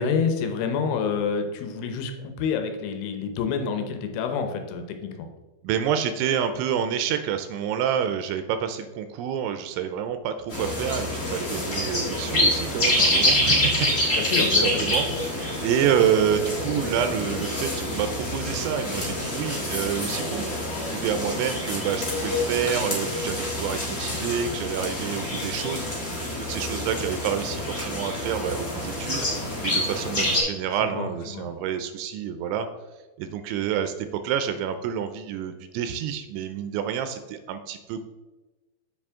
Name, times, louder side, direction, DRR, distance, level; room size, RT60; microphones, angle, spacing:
voice 1, 0.0-5.3 14.2-14.8 30.8-31.5, left 6 dB, 90° left, 6 dB, 3.4 m, -28 dB
voice 2, 5.6-20.5 20.9-29.3 29.6-32.7 33.2-38.1, right 8 dB, 85° right, 9 dB, 2.8 m, -28 dB
sound 1, 10.5-30.4, left 1 dB, 30° left, 1.5 m, -27 dB
7.5 x 7.2 x 3.6 m, 1.2 s
omnidirectional pair, 5.4 m